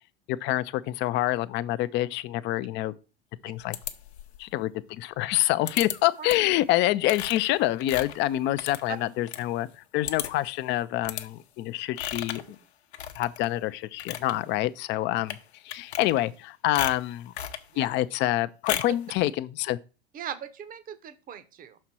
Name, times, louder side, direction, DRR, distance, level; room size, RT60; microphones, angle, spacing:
voice 1, 0.3-2.9 3.4-3.8 4.4-12.6 13.2-15.4 15.6-17.3 17.8-19.8, left 15 dB, 35° left, 0.5 m, -27 dB
sound 1, 3.7-4.4 5.7-6.0 6.3-6.6 7.0-9.4 9.7-9.8 10.0-10.5 11.0-11.3 12.0-12.5 12.9-13.5 13.8-14.3 15.2-15.4 15.7-16.4 16.7-17.7 18.7-19.0, left 10 dB, 80° left, 0.8 m, -35 dB
voice 2, 20.1-21.8, right 9 dB, 25° right, 0.8 m, -40 dB
5.8 x 4.3 x 6.1 m
hypercardioid pair, 100°, 32 cm